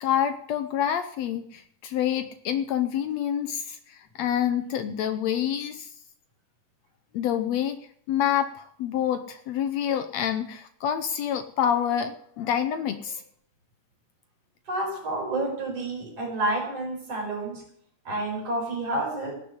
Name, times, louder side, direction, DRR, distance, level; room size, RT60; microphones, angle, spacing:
voice 1, 0.0-5.9 7.1-7.8 8.1-13.2, left 9 dB, 70° left, 9 dB, 1.8 m, -27 dB
voice 2, 14.7-17.6 18.0-19.3, right 2 dB, 55° right, 0 dB, 5.9 m, -29 dB
17.0 x 6.7 x 9.7 m, 0.68 s
omnidirectional pair, 3.4 m